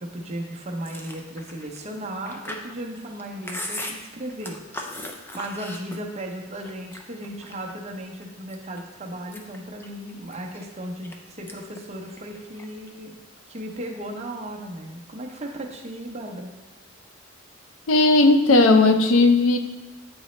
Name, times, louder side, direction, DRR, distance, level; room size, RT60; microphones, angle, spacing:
voice 1, 0.0-5.0 5.3-13.1 13.5-16.5, right 1 dB, 30° right, 1 dB, 0.7 m, -36 dB
Chewing mastication, 0.8-6.3 6.6-7.7 8.2-8.8 9.2-11.2 11.5-11.8 12.1-12.9, left 1 dB, 10° left, 0.4 m, -38 dB
voice 2, 17.9-19.6, left 2 dB, 70° left, 7 dB, 0.5 m, -16 dB
8.8 x 4.0 x 3.1 m, 1.1 s
head